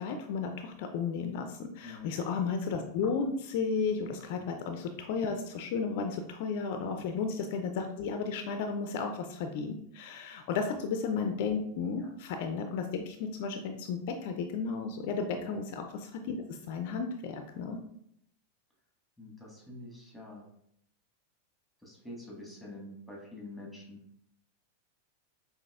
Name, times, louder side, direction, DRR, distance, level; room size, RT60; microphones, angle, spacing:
voice 1, 0.0-17.8, left 5 dB, 55° left, 5 dB, 0.3 m, -34 dB
voice 2, 1.8-2.1 4.3-4.4 6.9-7.1 12.0-12.1 15.4-15.5 16.9-17.0 19.2-20.4 21.8-24.0, left 1 dB, ahead, -3 dB, 1.4 m, -47 dB
5.7 x 2.7 x 2.3 m, 0.72 s
figure-of-eight pair, 95°, 0 cm